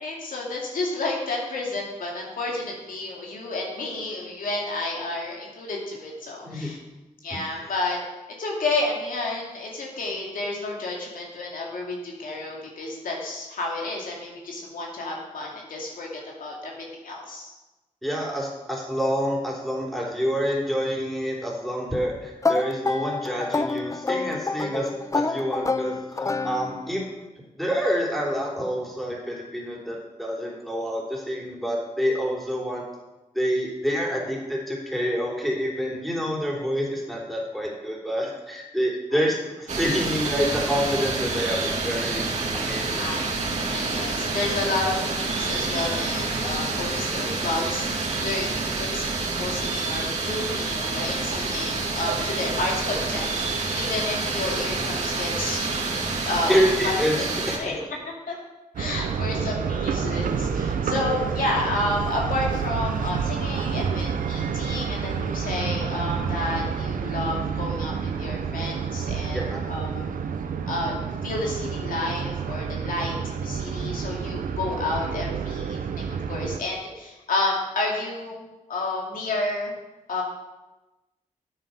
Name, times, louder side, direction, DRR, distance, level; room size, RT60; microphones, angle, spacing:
voice 1, 0.0-6.8 7.2-8.0 8.4-16.1 16.4-17.5 39.1-39.3 43.0-43.4 43.7-55.7 56.3-56.9 57.2-57.3 57.5-57.7 58.3-58.4 58.8-69.4 69.7-69.9 70.7-71.0 71.2-79.7 80.1-80.2, left 2 dB, 85° left, -2 dB, 2.5 m, -30 dB
voice 2, 18.0-27.0 27.6-32.8 33.3-43.1 56.5-57.3 57.6-57.7 69.3-69.6, equal, ahead, -3 dB, 3.4 m, -27 dB
sound 1, 22.4-27.0, left 3 dB, 25° left, 0.5 m, -28 dB
sound 2, 39.7-57.6, right 3 dB, 55° right, 2.4 m, -28 dB
sound 3, 58.7-76.6, right 6 dB, 90° right, 0.8 m, -29 dB
9.2 x 8.8 x 5.7 m, 1.1 s
cardioid pair, 75°, 14 cm